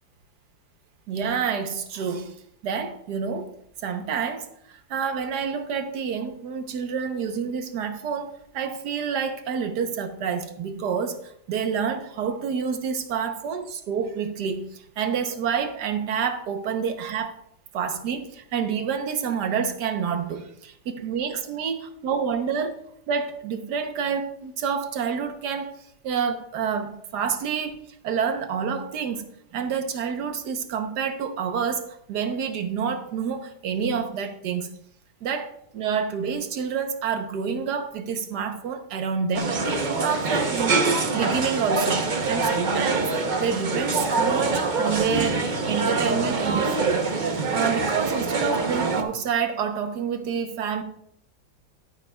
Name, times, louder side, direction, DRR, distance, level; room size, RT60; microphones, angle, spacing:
voice 1, 1.1-3.5 3.8-17.4 17.7-25.7 26.0-29.2 29.5-34.8 35.2-40.8 41.1-43.1 43.4-47.1 47.5-50.8, right 6 dB, 65° right, 1.4 m, -28 dB
sound 1, 39.3-49.0, right 3 dB, 45° right, 0.6 m, -24 dB
12.0 x 10.5 x 2.3 m
omnidirectional pair, 2.1 m